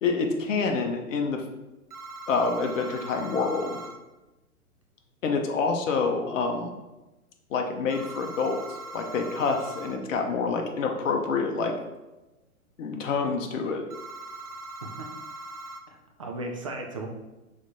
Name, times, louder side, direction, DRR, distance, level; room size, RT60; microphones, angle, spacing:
voice 1, 0.0-1.4 2.3-3.8 5.2-6.7 7.5-8.6 8.9-11.7 12.8-13.8, left 4 dB, 60° left, 3 dB, 0.7 m, -27 dB
sound 1, 1.9-4.0 7.9-10.0 13.9-15.8, right 2 dB, 80° right, 0.8 m, -41 dB
voice 2, 14.8-15.1 15.9-17.1, right 2 dB, 25° right, 1 dB, 0.4 m, -36 dB
5.9 x 3.2 x 2.6 m, 1.1 s
figure-of-eight pair, 120°, 44 cm